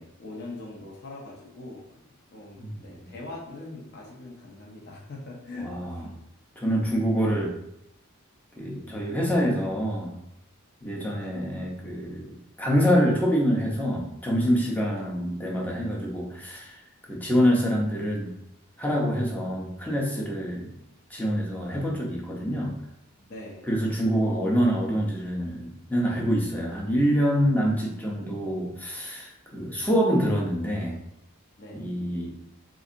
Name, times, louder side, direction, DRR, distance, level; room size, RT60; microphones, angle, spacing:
voice 1, 0.0-6.1 11.2-11.4 15.0-15.2 23.3-23.7 27.3-27.6 31.6-31.9, left 2 dB, 45° left, -3 dB, 0.6 m, -42 dB
voice 2, 5.6-5.9 6.6-7.5 8.6-10.1 10.8-16.8 17.1-18.3 18.8-20.7 21.1-22.7 23.7-31.0 31.7-32.3, equal, 10° left, -2 dB, 0.6 m, -26 dB
4.0 x 2.5 x 2.6 m, 0.78 s
head